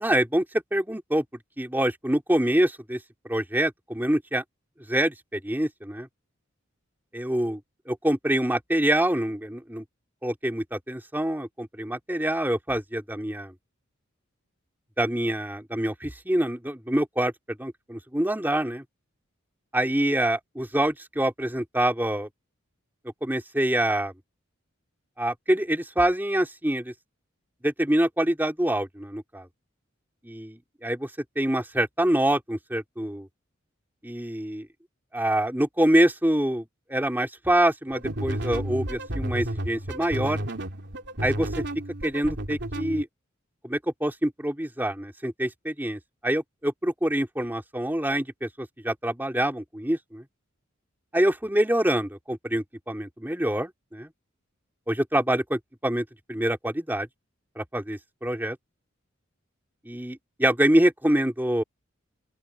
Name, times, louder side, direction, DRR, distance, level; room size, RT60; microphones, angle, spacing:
voice 1, 0.0-0.4 0.7-1.2 1.6-3.0 3.2-4.4 4.9-6.1 7.1-7.6 7.9-9.8 10.2-13.5 15.0-18.8 19.7-22.3 23.2-24.1 25.2-26.9 27.6-29.5 30.2-33.3 34.0-34.7 35.1-40.4 41.2-41.6 42.0-43.1 43.6-50.2 51.1-54.1 54.9-57.1 57.5-58.6 59.8-61.6, right 1 dB, 10° right, 3.2 m, -26 dB
sound 1, 37.9-43.0, right 1 dB, 60° right, 2.9 m, -32 dB
open air
head